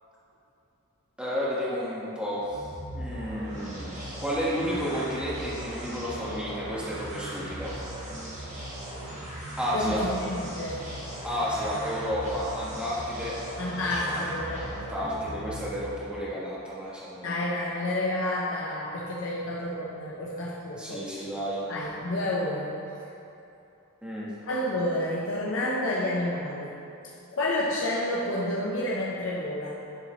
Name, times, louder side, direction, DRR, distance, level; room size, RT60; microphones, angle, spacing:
voice 1, 1.2-2.6 2.9-7.7 9.6-10.0 11.2-13.3 13.8-17.3 20.8-21.6 24.0-24.3, equal, 5° right, -8 dB, 1.6 m, -32 dB
sound 1, 2.3-16.1, right 1 dB, 30° right, 1.9 m, -38 dB
voice 2, 9.7-10.8 13.6-14.7 17.2-21.2 21.7-22.7 24.5-26.8 27.3-29.7, left 1 dB, 60° left, -5 dB, 0.9 m, -30 dB
10.5 x 6.9 x 3.2 m, 2.8 s
head